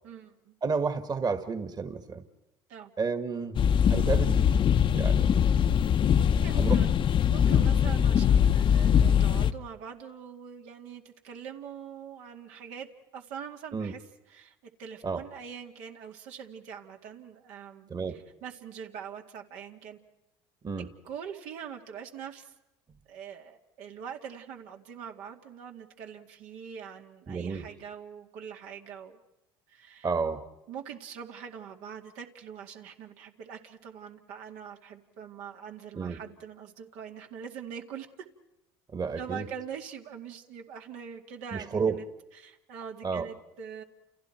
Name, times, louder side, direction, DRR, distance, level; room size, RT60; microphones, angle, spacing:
voice 1, 0.0-0.5 2.7-2.9 6.1-6.9 7.3-12.9 13.1-14.0 14.3-20.0 21.0-22.5 23.1-29.2 29.7-30.1 30.7-38.1 39.2-42.1 42.3-43.8, right 7 dB, 75° right, 2 dB, 2.2 m, -43 dB
voice 2, 0.6-2.2 3.0-3.6 3.9-4.5 4.9-5.3 6.5-6.8 7.5-7.8 13.7-13.9 15.0-15.2 17.9-18.1 20.6-20.9 27.3-27.6 30.0-30.4 35.9-36.2 38.9-39.4 41.5-42.0 43.0-43.3, right 5 dB, 35° right, 9 dB, 1.8 m, -31 dB
sound 1, 3.6-9.5, left 8 dB, 45° left, 0.9 m, -22 dB
30.0 x 29.0 x 4.6 m, 0.93 s
supercardioid pair, 90°, 12 cm